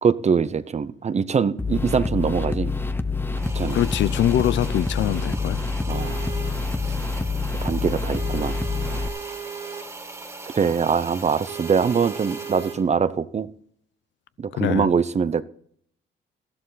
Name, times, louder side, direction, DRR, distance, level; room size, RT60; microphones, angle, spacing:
voice 1, 0.0-2.7 3.4-3.8 5.9-6.3 6.8-6.9 7.6-8.6 10.5-13.5 14.4-15.4, right 6 dB, 35° right, 0.7 m, -23 dB
sound 1, 1.6-9.1, left 3 dB, 10° left, 0.8 m, -27 dB
sound 2, 3.3-12.9, right 2 dB, 15° right, 2.3 m, -40 dB
voice 2, 3.7-5.6 14.6-14.9, left 12 dB, 65° left, 0.5 m, -23 dB
sound 3, 5.9-12.8, right 7 dB, 65° right, 3.4 m, -38 dB
13.5 x 11.5 x 4.0 m
cardioid pair, 90°, 20 cm